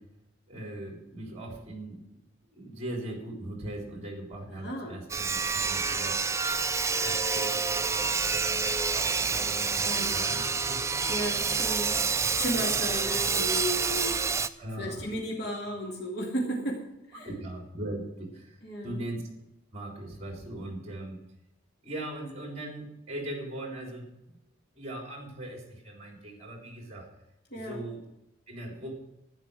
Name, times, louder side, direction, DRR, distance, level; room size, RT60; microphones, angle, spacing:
voice 1, 0.5-2.0 2.5-6.2 7.0-10.4 10.7-10.9 12.2-12.4 14.6-15.1 17.2-19.2 19.7-21.2 21.8-24.4 24.8-27.1 27.6-28.0 28.5-28.9, right 1 dB, 30° right, 1 dB, 3.6 m, -40 dB
voice 2, 4.5-5.0 9.8-10.2 11.1-12.0 12.4-14.5 14.8-17.3 18.6-19.0 27.5-27.8, equal, 55° left, -2 dB, 2.5 m, -34 dB
Sawing, 5.1-14.5, right 5 dB, 15° right, 0.4 m, -28 dB
11.5 x 10.0 x 6.3 m, 0.89 s
head